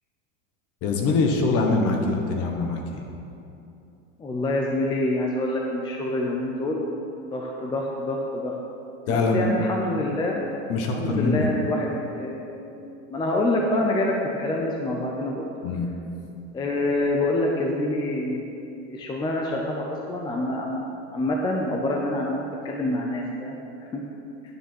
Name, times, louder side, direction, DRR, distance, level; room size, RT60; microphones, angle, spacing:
voice 1, 0.8-3.0 9.1-9.5 10.7-11.5 15.6-15.9, left 3 dB, 40° left, 3 dB, 1.3 m, -23 dB
voice 2, 4.2-6.8 7.3-8.6 9.1-10.4 10.9-12.8 13.1-15.5 16.5-18.6 18.9-20.8 21.1-23.6 23.9-24.0, left 1 dB, 10° left, -1 dB, 0.5 m, -26 dB
9.4 x 6.9 x 5.9 m, 2.8 s
supercardioid pair, 145°, 37 cm